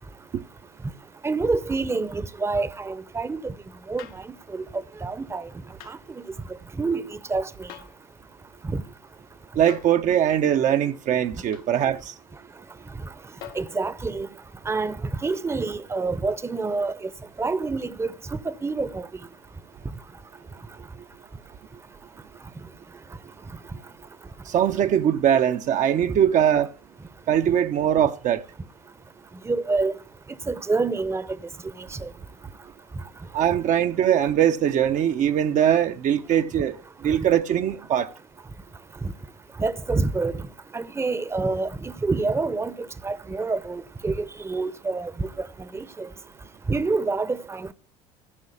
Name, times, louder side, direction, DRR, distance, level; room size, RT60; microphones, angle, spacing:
voice 1, 1.2-3.5 3.9-4.2 4.5-4.6 5.0-5.5 5.9-6.0 6.8-7.7 8.7-8.8 13.5-14.3 14.7-15.0 15.2-16.9 17.4-19.1 26.1-26.2 29.4-29.9 30.5-31.3 32.0-32.1 39.0-39.1 39.6-40.5 40.7-42.7 43.0-45.5 45.7-46.1 46.7-47.7, right 3 dB, 15° right, 0.8 m, -27 dB
sound 1, 4.0-4.3 5.8-6.0 7.7-8.0 9.7-10.0 11.5-11.7 13.4-13.8 15.3-15.4, left 12 dB, 65° left, 1.0 m, -44 dB
voice 2, 9.5-12.1 24.5-26.7 27.3-28.4 33.3-36.8 37.0-38.1, right 10 dB, 50° right, 0.8 m, -21 dB
14.5 x 6.2 x 8.4 m
hypercardioid pair, 70°, 17 cm